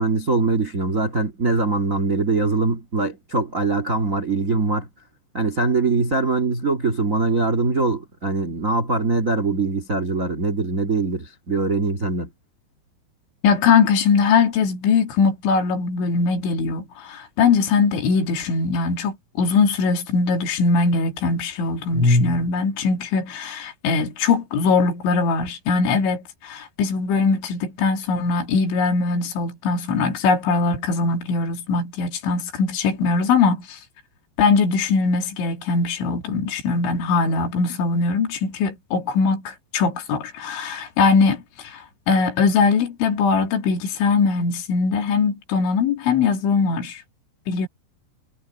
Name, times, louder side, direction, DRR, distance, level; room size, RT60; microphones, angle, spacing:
voice 1, 0.0-4.9 5.3-12.3, right 3 dB, 80° right, 0.7 m, -22 dB
voice 2, 13.4-33.8 34.4-47.0 47.5-47.7, left 4 dB, 90° left, 4.9 m, -21 dB
omnidirectional pair, 5.2 m